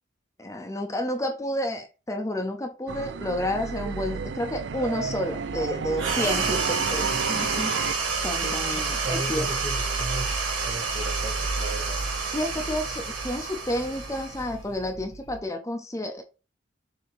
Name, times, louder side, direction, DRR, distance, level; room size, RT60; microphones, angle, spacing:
voice 1, 0.4-7.7 8.2-9.5 12.3-16.2, left 1 dB, 15° left, 0.6 m, -30 dB
sound 1, 2.9-7.9, right 5 dB, 65° right, 0.4 m, -32 dB
sound 2, 4.3-15.4, right 2 dB, 80° left, 2.1 m, -37 dB
sound 3, 6.0-14.9, right 4 dB, 80° right, 2.2 m, -29 dB
voice 2, 8.4-10.3 10.6-12.0, right 1 dB, 40° right, 1.7 m, -36 dB
7.0 x 2.8 x 4.7 m
head